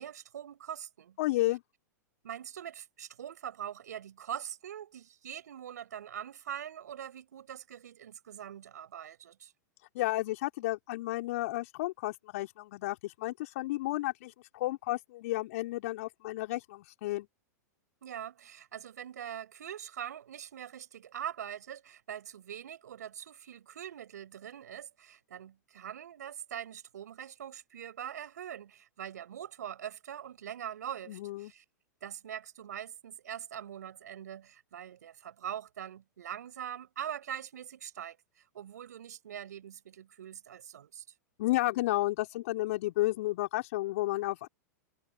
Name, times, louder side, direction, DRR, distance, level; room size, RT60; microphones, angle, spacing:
voice 1, 0.0-1.2 2.2-9.5 18.0-31.6 32.0-41.0, right 10 dB, 70° right, 4.9 m, -43 dB
voice 2, 1.2-1.6 9.9-17.3 31.1-31.5 41.4-44.5, left 18 dB, 55° left, 3.7 m, -32 dB
figure-of-eight pair, 100°, 9 cm